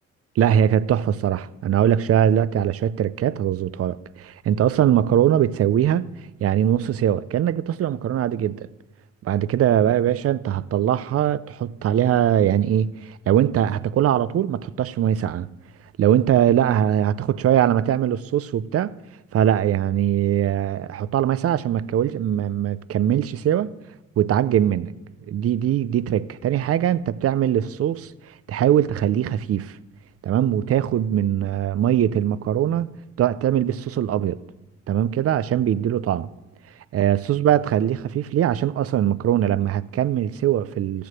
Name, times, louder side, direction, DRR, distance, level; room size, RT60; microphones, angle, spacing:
voice 1, 0.4-6.1 6.4-8.7 9.2-15.5 16.0-18.9 19.3-23.7 24.2-24.9 25.3-28.1 28.5-29.8 30.2-32.9 33.2-34.4 34.9-36.3 36.9-41.1, right 10 dB, 50° right, 0.5 m, -21 dB
14.0 x 6.8 x 7.6 m
cardioid pair, 90°, 30 cm